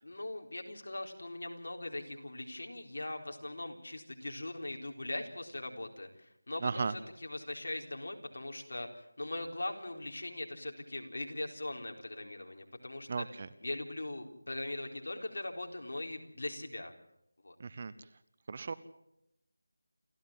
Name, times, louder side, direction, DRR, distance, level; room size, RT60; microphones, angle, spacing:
voice 1, 0.0-13.2 13.6-16.9 17.4-17.6, left 2 dB, 70° left, 3 dB, 4.0 m, -40 dB
voice 2, 6.6-6.9 13.1-13.5 17.6-17.9 18.5-18.7, right 4 dB, 30° right, 17 dB, 0.7 m, -35 dB
28.5 x 14.0 x 7.5 m, 0.80 s
figure-of-eight pair, 175°, 0 cm